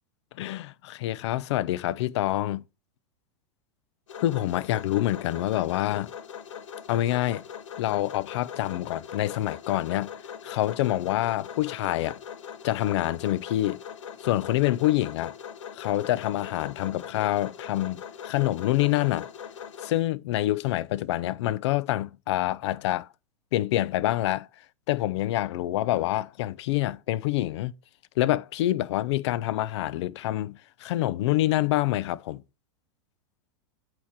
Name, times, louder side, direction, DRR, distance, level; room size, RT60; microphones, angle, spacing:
voice 1, 0.4-2.6 4.2-6.1 6.9-7.4 7.8-10.1 10.4-12.2 12.6-13.8 14.2-15.3 15.8-19.3 19.8-23.1 23.5-24.5 24.9-27.7 28.2-32.4, left 15 dB, 65° left, 0.5 m, -26 dB
sound 1, 4.1-19.9, left 8 dB, 90° left, 1.3 m, -41 dB
8.6 x 2.9 x 5.9 m
supercardioid pair, 140°, 16 cm